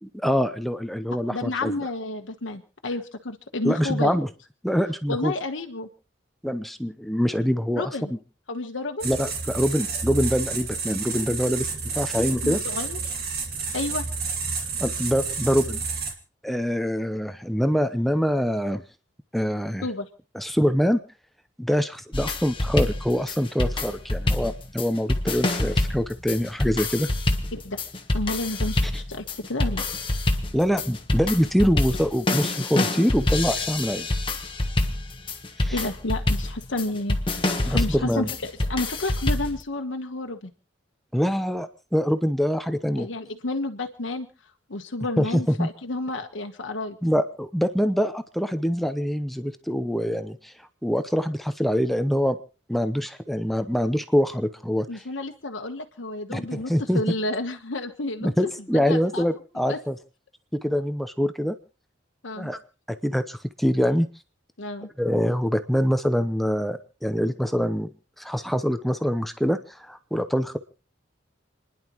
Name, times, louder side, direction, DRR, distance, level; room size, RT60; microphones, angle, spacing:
voice 1, 0.0-1.7 3.6-4.3 4.6-5.3 6.4-7.9 9.0-11.7 11.9-12.6 14.8-15.8 16.4-18.8 19.3-19.9 20.3-21.0 21.6-27.1 28.8-29.0 30.5-34.1 35.6-35.8 37.7-38.3 41.1-43.1 45.2-45.7 47.0-50.5 50.8-52.4 52.7-55.0 56.3-57.1 58.2-60.0 60.5-61.6 62.4-62.6 62.9-64.1 65.0-67.9 68.2-70.6, equal, ahead, 9 dB, 0.7 m, -24 dB
voice 2, 1.3-4.2 5.1-5.9 7.8-8.1 8.5-9.1 12.3-13.1 13.7-14.0 19.8-20.1 27.5-27.8 28.1-29.9 35.7-40.5 43.0-44.3 44.7-47.0 54.9-58.3 58.7-59.2 59.7-59.8 62.2-62.5 64.6-64.9, left 2 dB, 80° left, 4 dB, 1.2 m, -31 dB
sound 1, 9.0-16.1, right 4 dB, 55° right, 2.4 m, -30 dB
sound 2, 22.1-39.6, left 2 dB, 25° left, 1.2 m, -26 dB
29.5 x 11.0 x 3.0 m, 0.36 s
head